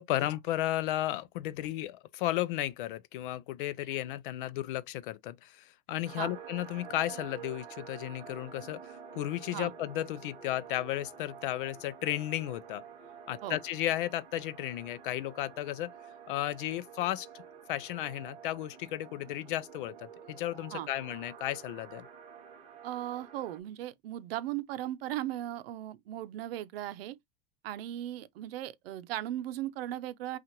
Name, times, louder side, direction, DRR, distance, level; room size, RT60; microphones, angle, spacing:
voice 1, 0.0-12.8 13.3-15.9 16.3-17.3 17.7-22.1, left 14 dB, 60° left, 0.5 m, -34 dB
sound 1, 6.0-23.6, right 7 dB, 20° right, 0.7 m, -49 dB
voice 2, 22.8-27.2 27.6-30.4, right 13 dB, 75° right, 0.7 m, -37 dB
5.7 x 2.5 x 2.9 m
supercardioid pair, 175°, 30 cm